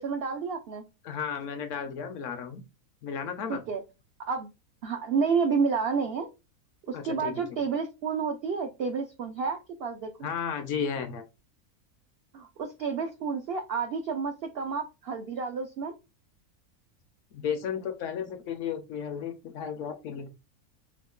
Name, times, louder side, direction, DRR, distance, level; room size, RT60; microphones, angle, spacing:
voice 1, 0.0-0.9 3.5-3.8 4.3-4.5 4.8-6.3 6.9-10.3 12.3-15.9, right 5 dB, 80° right, 6 dB, 0.5 m, -30 dB
voice 2, 1.0-2.6 3.0-3.6 6.9-7.3 10.2-11.2 17.3-20.3, left 7 dB, 65° left, 7 dB, 0.8 m, -33 dB
3.6 x 2.8 x 2.2 m, 0.27 s
omnidirectional pair, 1.6 m